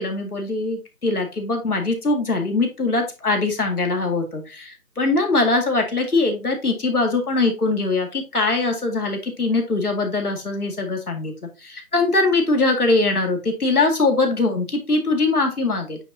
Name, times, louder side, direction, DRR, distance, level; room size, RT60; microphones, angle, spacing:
voice 1, 0.0-11.3 11.6-16.0, left 3 dB, 75° left, 3 dB, 2.3 m, -22 dB
8.8 x 4.1 x 2.7 m, 0.28 s
figure-of-eight pair, 175°, 45 cm